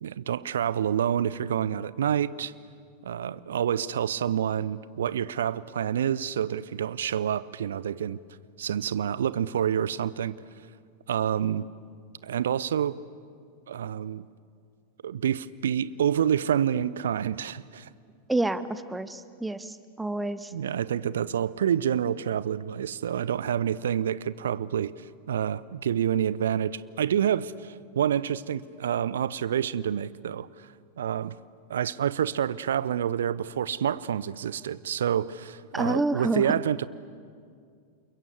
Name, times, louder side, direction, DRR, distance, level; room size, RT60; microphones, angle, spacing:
voice 1, 0.0-2.5 3.0-8.2 8.6-10.4 11.1-11.7 12.2-13.0 13.7-14.3 15.0-17.9 20.5-24.9 25.3-30.5 31.0-31.4 31.7-36.9, right 9 dB, 65° right, 0.6 m, -28 dB
voice 2, 18.3-20.5 35.7-36.4, right 2 dB, 5° right, 0.8 m, -28 dB
28.5 x 22.5 x 8.3 m
figure-of-eight pair, 90°, 0 cm